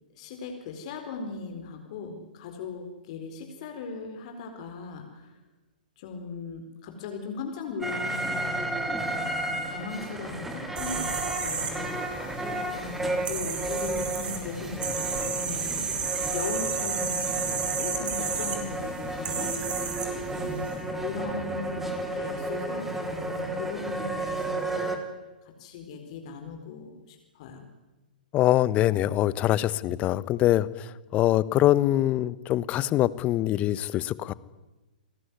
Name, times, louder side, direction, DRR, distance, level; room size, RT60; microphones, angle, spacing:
voice 1, 0.1-5.4 6.0-12.0 12.7-15.9 16.3-19.5 20.3-25.0 25.4-27.6, left 5 dB, 45° left, 4 dB, 4.4 m, -38 dB
sound 1, 7.8-25.0, right 2 dB, 5° right, 3.5 m, -32 dB
sound 2, 10.8-20.8, right 6 dB, 20° right, 4.9 m, -33 dB
voice 2, 28.3-34.3, left 14 dB, 25° left, 19 dB, 1.1 m, -24 dB
29.0 x 19.0 x 9.6 m, 1.1 s
figure-of-eight pair, 115°, 5 cm